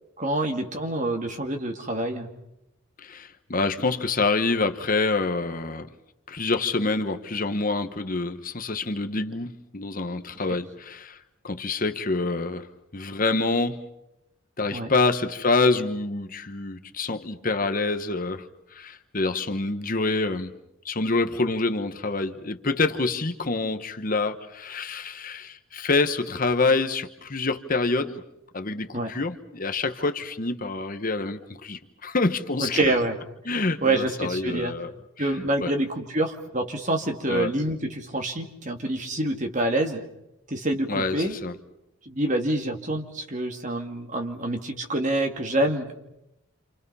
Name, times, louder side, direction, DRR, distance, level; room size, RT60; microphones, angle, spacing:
voice 1, 0.2-2.3 10.5-10.6 14.7-14.9 28.9-29.1 32.6-33.1 33.8-34.8 35.2-40.0 40.5-41.4 42.1-46.0, right 1 dB, 35° right, 4 dB, 2.4 m, -27 dB
voice 2, 3.0-5.9 6.3-11.2 11.4-12.7 12.9-13.8 14.6-20.5 20.8-28.2 28.5-32.8 33.5-34.9 35.6-35.7 37.3-37.5 40.9-41.5, left 3 dB, 40° left, 7 dB, 1.1 m, -26 dB
28.0 x 28.0 x 5.6 m, 0.85 s
head